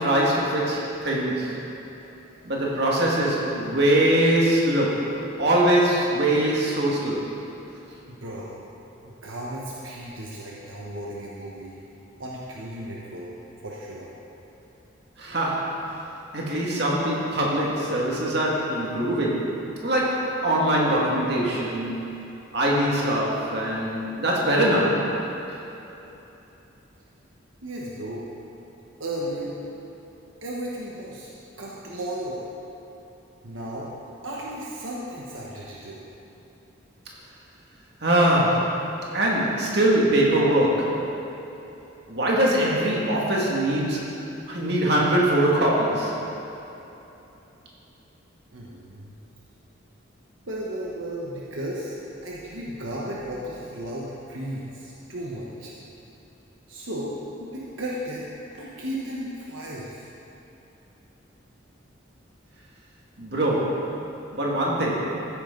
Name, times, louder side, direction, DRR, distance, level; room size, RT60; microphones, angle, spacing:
voice 1, 0.0-1.6 2.4-5.1 5.4-7.3 15.2-15.8 16.3-22.1 22.5-25.1 38.0-38.8 39.1-41.0 42.1-44.1 44.5-46.1 63.2-63.8 64.3-65.1, right 1 dB, 55° right, -4 dB, 2.2 m, -22 dB
voice 2, 2.0-2.5 8.1-8.5 9.0-11.8 12.2-13.3 13.6-14.1 27.6-28.2 29.0-29.6 30.4-31.3 31.6-32.4 33.4-33.9 34.2-36.0 48.5-49.2 50.5-52.0 52.2-55.7 56.7-60.1, right 1 dB, 80° right, -5 dB, 1.3 m, -35 dB
14.0 x 10.0 x 4.0 m, 3.0 s
head